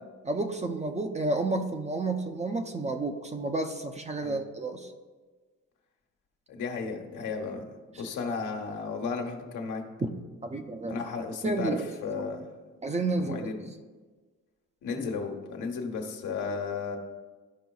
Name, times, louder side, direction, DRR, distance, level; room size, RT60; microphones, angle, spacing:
voice 1, 0.3-4.9 10.0-10.1 10.4-11.0 11.4-11.9 12.8-13.5, right 2 dB, 20° right, 5 dB, 0.7 m, -30 dB
voice 2, 6.5-9.8 10.9-12.5 13.2-13.5 14.8-17.0, left 4 dB, 80° left, 2 dB, 1.2 m, -34 dB
13.0 x 5.1 x 2.3 m, 1.3 s
cardioid pair, 90°, 30 cm